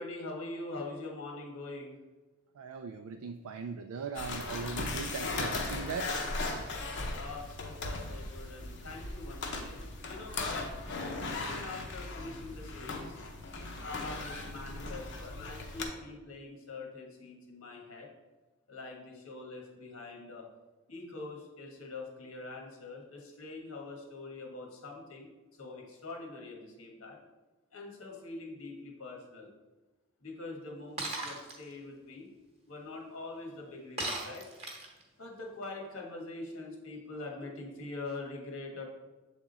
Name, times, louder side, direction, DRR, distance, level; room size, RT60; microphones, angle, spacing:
voice 1, 0.0-2.0 7.1-10.6 11.3-13.2 13.8-18.1 18.7-20.4 20.9-25.3 25.6-27.2 27.7-29.5 30.2-32.3 32.7-34.5 35.2-38.8, left 2 dB, 75° left, 0 dB, 1.4 m, -44 dB
voice 2, 2.6-6.1, right 5 dB, 85° right, 6 dB, 0.4 m, -39 dB
sound 1, 4.1-15.8, left 3 dB, 55° left, 0.7 m, -38 dB
Shatter, 31.0-31.6 34.0-35.0, right 2 dB, 30° right, 1.1 m, -36 dB
7.2 x 3.6 x 4.0 m, 1.2 s
head